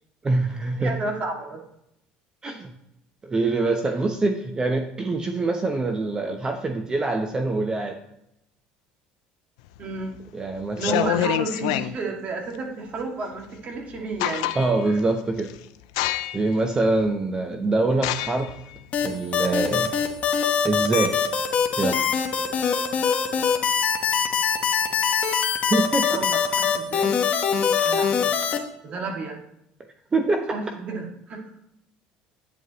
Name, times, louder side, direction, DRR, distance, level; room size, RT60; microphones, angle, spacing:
voice 1, 0.2-0.9 2.4-2.7 3.2-8.0 10.3-11.2 14.5-15.5 16.3-18.6 19.0-19.9 20.6-21.3 21.8-22.0 25.7-26.1 30.1-30.6, right 2 dB, 25° right, 5 dB, 0.8 m, -24 dB
voice 2, 0.8-1.6 2.4-2.5 3.8-3.9 9.8-10.1 10.8-14.5 26.1-27.2 27.8-28.4 28.8-29.4 30.5-31.5, right 3 dB, 45° right, 1 dB, 2.1 m, -31 dB
sound 1, 9.8-10.2 10.7-11.9 13.6-13.7 14.0-14.9 15.4-15.6 16.0-16.5 17.1-17.2 18.0-20.3, left 14 dB, 90° left, 0.4 m, -27 dB
sound 2, 18.9-28.6, left 7 dB, 45° left, 1.2 m, -23 dB
9.2 x 8.2 x 3.0 m, 0.80 s
supercardioid pair, 100°, 3 cm